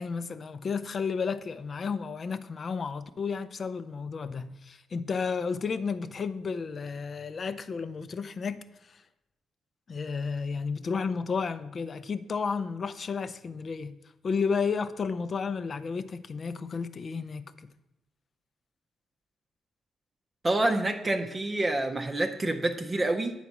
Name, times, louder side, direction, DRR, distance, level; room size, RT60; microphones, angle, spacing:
voice 1, 0.0-8.6 9.9-14.0 14.2-17.4, left 5 dB, 40° left, 0.4 m, -32 dB
voice 2, 20.4-23.3, right 2 dB, 25° right, 0.6 m, -27 dB
8.6 x 4.1 x 5.9 m
cardioid pair, 90°, 0 cm